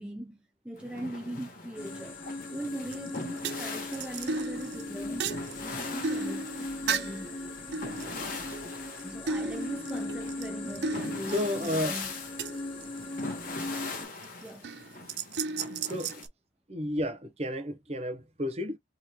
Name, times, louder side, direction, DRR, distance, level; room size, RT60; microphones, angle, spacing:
voice 1, 0.0-2.2 2.5-5.3 5.6-7.6 9.0-12.1 14.4-14.7, right 1 dB, 5° right, 0.4 m, -40 dB
sound 1, 0.8-16.3, left 3 dB, 45° left, 1.2 m, -42 dB
sound 2, 1.8-14.1, left 2 dB, 30° left, 1.4 m, -39 dB
sound 3, 2.9-3.2 3.4-7.3 7.7-9.0 9.3-13.3 13.9-14.2 14.6-16.3, right 4 dB, 60° right, 0.4 m, -35 dB
voice 2, 11.3-11.9 15.9-16.2 16.7-18.8, left 1 dB, 35° right, 0.8 m, -31 dB
3.5 x 3.2 x 2.9 m
head